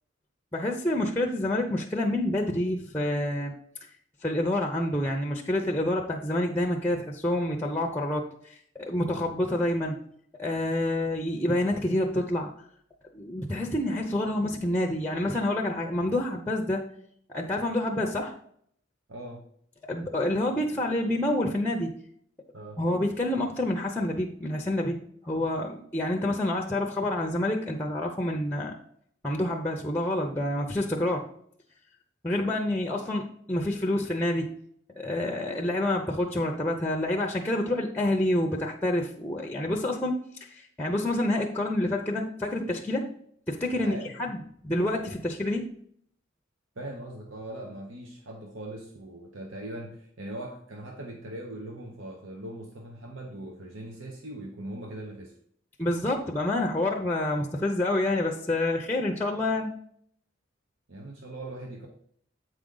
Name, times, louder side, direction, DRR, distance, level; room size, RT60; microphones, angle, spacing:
voice 1, 0.5-3.5 4.2-10.0 10.4-12.5 13.1-16.9 17.3-18.3 19.9-21.9 22.8-25.0 25.2-28.7 29.2-31.2 32.2-34.5 35.0-40.2 40.5-43.1 43.5-44.4 44.6-45.6 55.8-59.7, left 1 dB, 10° left, 2 dB, 0.6 m, -28 dB
voice 2, 19.1-19.4 22.5-22.8 43.8-44.3 46.8-55.3 60.9-61.9, right 1 dB, 75° right, 1 dB, 1.1 m, -40 dB
7.8 x 4.9 x 3.9 m, 0.65 s
head